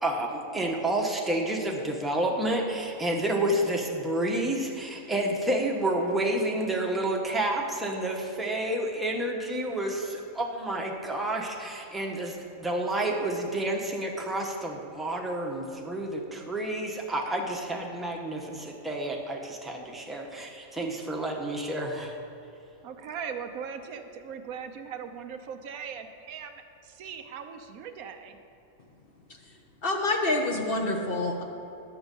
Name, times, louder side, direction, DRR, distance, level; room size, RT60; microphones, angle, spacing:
voice 1, 0.0-22.2, right 1 dB, ahead, -1 dB, 0.7 m, -30 dB
voice 2, 22.8-28.4, right 7 dB, 85° right, 7 dB, 1.2 m, -39 dB
voice 3, 29.8-31.4, left 2 dB, 45° left, 2 dB, 0.9 m, -27 dB
10.5 x 7.3 x 5.3 m, 2.8 s
omnidirectional pair, 1.5 m